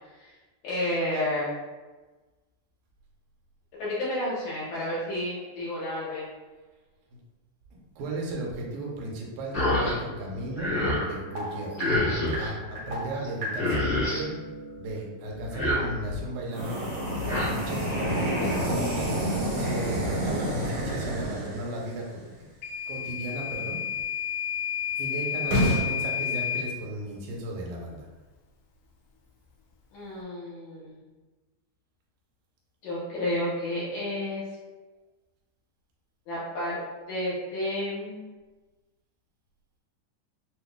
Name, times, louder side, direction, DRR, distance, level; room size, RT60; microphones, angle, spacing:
voice 1, 0.6-1.5 3.8-6.3 25.5-25.6 29.9-31.0 32.8-34.4 36.3-36.8 37.1-38.2, left 1 dB, 70° left, -9 dB, 1.9 m, -31 dB
voice 2, 7.7-10.7 11.1-11.7 12.4-14.4 14.8-19.1 19.5-22.1 22.9-23.8 25.0-28.1, right 1 dB, 85° right, -2 dB, 2.4 m, -35 dB
sound 1, 9.5-9.9 10.3-11.1 11.8-12.5 13.2-13.3 13.5-14.2 15.4-16.2 17.0-17.5, left 1 dB, 50° left, 1.5 m, -27 dB
sound 2, 10.5-15.2 16.5-22.0 25.4-25.8, equal, 70° right, 1.5 m, -30 dB
Microwave oven / Alarm, 22.6-26.7, left 8 dB, 85° left, 1.7 m, -31 dB
6.3 x 2.4 x 2.2 m, 1.2 s
omnidirectional pair, 4.1 m